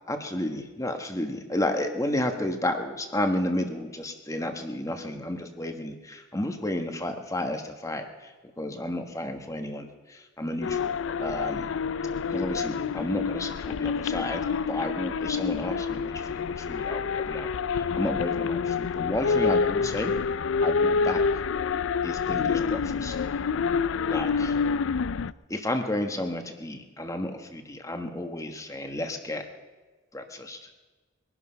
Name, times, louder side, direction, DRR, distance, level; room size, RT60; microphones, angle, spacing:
voice 1, 0.1-11.7 12.3-20.1 20.6-21.4 22.0-23.2 24.1-24.6 25.5-29.4 30.1-30.7, left 1 dB, 15° left, 6 dB, 1.4 m, -32 dB
sound 1, 10.6-25.3, left 5 dB, 75° left, 0.4 m, -27 dB
22.5 x 11.0 x 5.7 m, 1.3 s
head